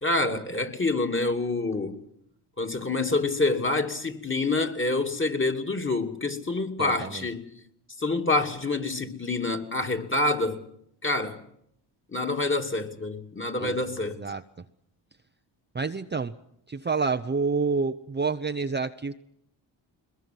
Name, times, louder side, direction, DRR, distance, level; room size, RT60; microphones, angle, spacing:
voice 1, 0.0-2.0 2.6-7.5 8.0-10.6 11.0-11.4 12.1-14.2, left 2 dB, 25° left, 2.7 m, -27 dB
voice 2, 6.8-7.2 13.6-13.8 14.2-14.4 15.7-16.3 16.7-19.2, right 4 dB, 20° right, 0.8 m, -28 dB
21.5 x 21.0 x 7.8 m
supercardioid pair, 55°, 49 cm